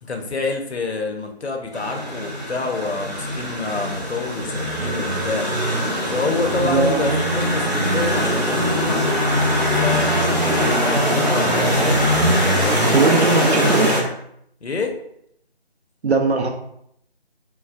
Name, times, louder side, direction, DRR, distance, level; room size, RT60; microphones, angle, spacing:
voice 1, 0.0-5.5 6.1-9.2 9.8-12.1 12.5-14.0 14.6-14.9, left 3 dB, 90° left, 4 dB, 0.6 m, -27 dB
sound 1, 1.7-14.0, equal, 40° right, 0.7 m, -21 dB
voice 2, 6.6-7.2 12.9-13.9 16.0-16.5, right 4 dB, 85° right, 3 dB, 0.5 m, -19 dB
3.3 x 2.1 x 2.3 m, 0.73 s
figure-of-eight pair, 165°, 32 cm